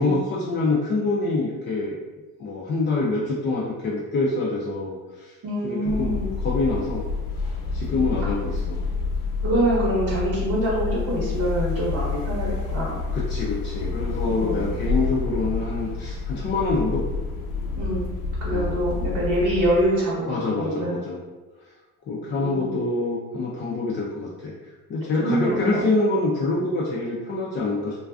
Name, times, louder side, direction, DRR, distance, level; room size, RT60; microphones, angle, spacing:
voice 1, 0.0-2.0 2.4-5.3 5.6-7.1 7.7-8.8 13.1-17.0 18.5-18.8 20.3-21.2 22.1-24.5 24.9-28.0, left 3 dB, 30° left, -5 dB, 0.4 m, -26 dB
voice 2, 5.4-6.3 9.4-13.0 14.2-14.8 17.8-18.1 18.4-20.9 22.3-22.8 25.2-25.8, right 1 dB, 45° right, -5 dB, 0.9 m, -25 dB
sound 1, 5.9-19.9, left 4 dB, 75° left, 0.6 m, -28 dB
2.3 x 2.3 x 2.3 m, 1.2 s
supercardioid pair, 85°, 41 cm